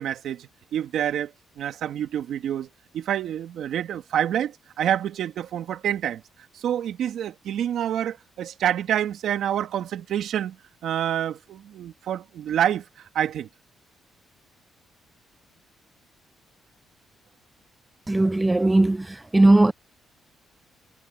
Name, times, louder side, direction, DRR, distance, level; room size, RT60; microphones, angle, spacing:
voice 1, 0.0-2.7 2.9-6.2 6.5-10.6 10.8-12.8 13.1-13.5, right 10 dB, 75° right, 2.7 m, -27 dB
voice 2, 18.1-19.1 19.3-19.7, right 2 dB, 15° right, 0.4 m, -17 dB
cardioid pair, 90°, 0 cm